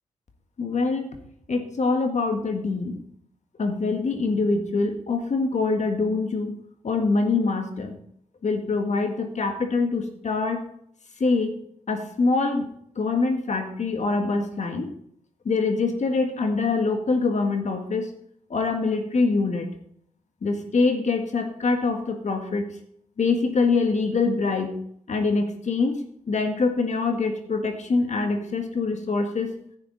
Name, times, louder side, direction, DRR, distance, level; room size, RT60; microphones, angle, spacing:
voice 1, 0.6-1.2 1.5-3.0 3.6-6.6 6.8-8.0 8.4-10.7 11.2-11.6 11.9-14.9 15.4-18.1 18.5-19.7 20.4-22.7 23.2-24.7 25.1-26.0 26.3-29.6, left 3 dB, 60° left, 6 dB, 1.6 m, -24 dB
11.0 x 8.9 x 4.0 m, 0.68 s
supercardioid pair, 45°, 14 cm